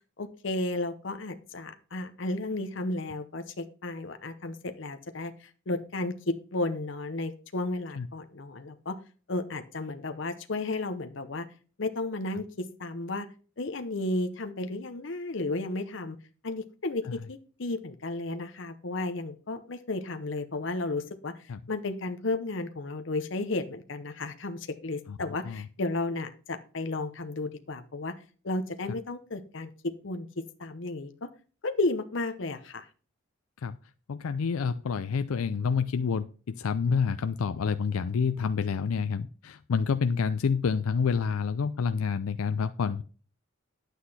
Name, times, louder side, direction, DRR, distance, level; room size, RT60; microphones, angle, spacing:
voice 1, 0.2-9.0 9.3-11.5 11.8-13.3 13.6-16.2 16.4-28.1 28.4-29.7 30.0-30.3 30.6-31.3 31.6-32.9, left 2 dB, 60° left, 9 dB, 0.8 m, -33 dB
voice 2, 34.1-43.0, left 5 dB, 90° left, 10 dB, 0.5 m, -28 dB
9.7 x 8.2 x 4.2 m, 0.39 s
head